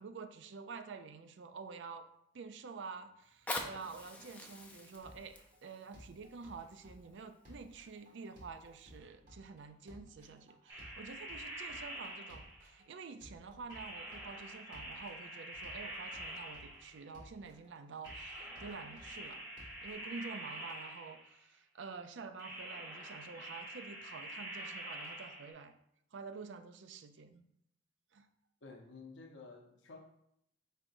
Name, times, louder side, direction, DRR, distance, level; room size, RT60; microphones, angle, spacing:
voice 1, 0.0-2.1 2.3-5.3 5.6-19.5 19.8-25.8 26.1-27.4 28.1-28.3, right 5 dB, 70° right, 9 dB, 0.4 m, -49 dB
Fire, 3.2-8.2 8.8-8.9, left 2 dB, 10° left, 0.5 m, -46 dB
sound 1, 4.9-19.9, equal, 45° right, 1.7 m, -58 dB
sound 2, 10.7-12.8 13.7-17.1 18.0-21.4 22.4-25.5, right 1 dB, 20° right, 1.3 m, -46 dB
voice 2, 28.6-30.0, left 3 dB, 75° left, 2 dB, 0.8 m, -52 dB
4.7 x 4.4 x 2.6 m, 0.74 s
head